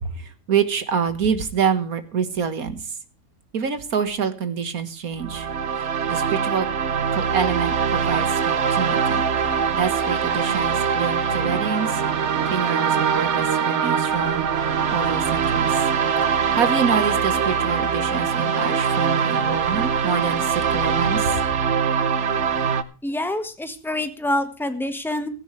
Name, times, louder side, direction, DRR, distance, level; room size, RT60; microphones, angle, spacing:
voice 1, 0.0-2.9 3.5-5.5 6.1-6.7 7.1-9.2 9.7-12.0 12.5-14.5 14.9-15.8 16.5-21.4, right 6 dB, 70° right, 11 dB, 1.9 m, -26 dB
sound 1, 5.1-22.8, right 7 dB, 55° right, 1.1 m, -22 dB
sound 2, 6.2-21.2, left 5 dB, 60° left, 1.9 m, -40 dB
voice 2, 23.0-25.3, left 1 dB, ahead, 8 dB, 1.4 m, -26 dB
16.0 x 14.5 x 3.2 m, 0.36 s
omnidirectional pair, 1.6 m